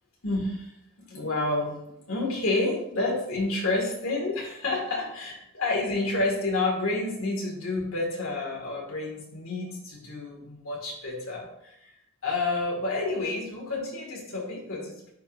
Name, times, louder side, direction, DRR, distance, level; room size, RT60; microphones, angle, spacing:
voice 1, 0.2-0.7 1.1-11.9 12.2-15.1, left 2 dB, 85° left, -2 dB, 2.1 m, -29 dB
10.0 x 3.9 x 2.6 m, 0.80 s
head